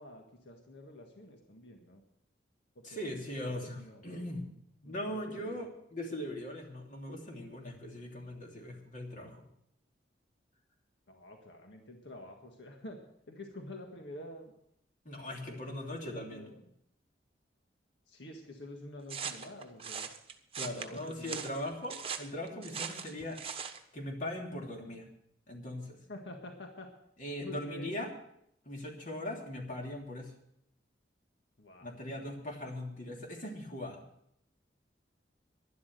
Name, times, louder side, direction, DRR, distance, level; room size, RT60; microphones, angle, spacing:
voice 1, 0.0-2.0 2.7-4.0 4.8-5.7 11.1-13.0 13.3-14.5 15.7-16.6 18.1-20.1 20.6-21.4 26.1-26.9 27.4-28.0 31.6-31.9, left 1 dB, 80° left, 3 dB, 1.7 m, -48 dB
voice 2, 2.8-4.5 4.8-9.5 15.0-16.4 20.6-23.4 23.9-25.1 25.5-26.0 27.2-28.1 28.6-30.3 31.8-34.0, left 1 dB, 45° left, 1 dB, 2.9 m, -40 dB
sound 1, 19.1-23.8, right 7 dB, 35° right, 1.1 m, -40 dB
12.0 x 11.5 x 6.6 m, 0.74 s
head